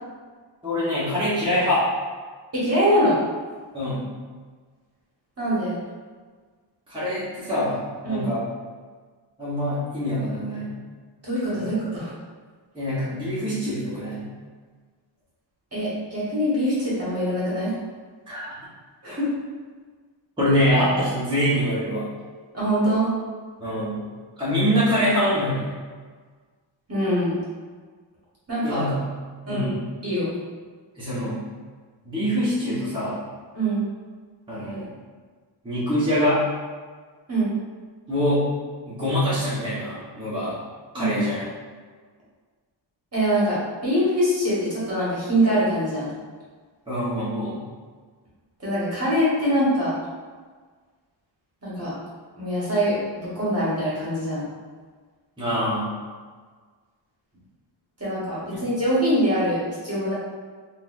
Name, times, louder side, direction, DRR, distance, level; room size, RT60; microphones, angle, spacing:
voice 1, 0.6-1.8 3.7-4.0 6.9-8.4 9.4-10.7 11.5-11.7 12.7-14.3 18.3-18.5 20.4-22.1 23.6-24.0 24.4-25.7 28.6-28.9 29.4-29.8 31.0-31.4 32.0-33.2 34.5-34.9 35.6-36.4 38.1-38.5 38.9-40.5 40.9-41.4 46.9-47.6 55.4-55.9 58.5-58.6, equal, 10° right, -12 dB, 1.2 m, -24 dB
voice 2, 2.5-3.2 5.4-5.8 8.0-8.3 11.2-12.1 15.7-17.7 19.0-19.3 22.5-23.1 26.9-27.4 28.5-28.8 29.5-29.7 30.0-30.3 33.5-33.8 37.3-37.5 40.9-41.2 43.1-46.1 48.6-49.9 51.6-51.9 52.4-52.9 53.2-54.5 58.0-60.1, equal, 30° right, -9 dB, 1.4 m, -23 dB
4.1 x 2.6 x 2.6 m, 1.5 s
wide cardioid pair, 135°, 45 cm